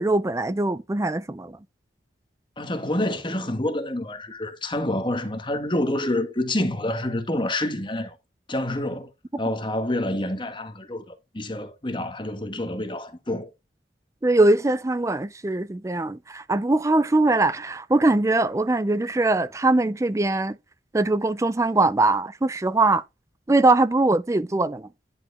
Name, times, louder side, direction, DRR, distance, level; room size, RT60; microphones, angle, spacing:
voice 1, 0.0-1.5 14.2-20.6 20.9-23.0 23.5-24.9, right 2 dB, 15° right, 0.4 m, -21 dB
voice 2, 2.6-8.2 8.5-9.1 9.4-13.5, left 1 dB, 25° left, 1.6 m, -27 dB
10.5 x 4.8 x 3.5 m
head